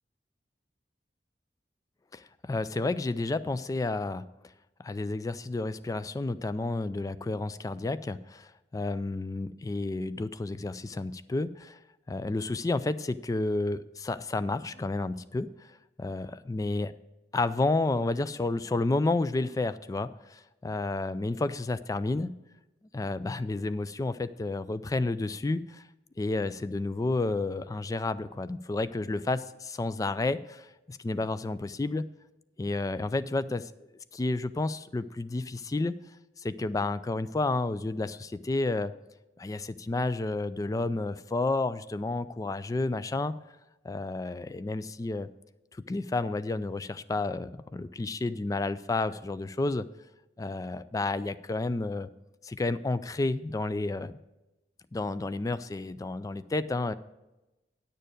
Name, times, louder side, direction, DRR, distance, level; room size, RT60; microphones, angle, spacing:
voice 1, 2.1-4.3 4.8-11.8 12.1-15.5 16.0-16.9 17.3-22.3 22.9-25.8 26.2-32.0 32.6-33.7 34.1-36.0 36.4-38.9 39.4-43.3 43.8-45.3 45.9-49.9 50.4-52.1 52.4-54.2 54.9-56.9, left 2 dB, 20° left, 14 dB, 0.3 m, -31 dB
10.0 x 6.7 x 5.0 m, 1.0 s
head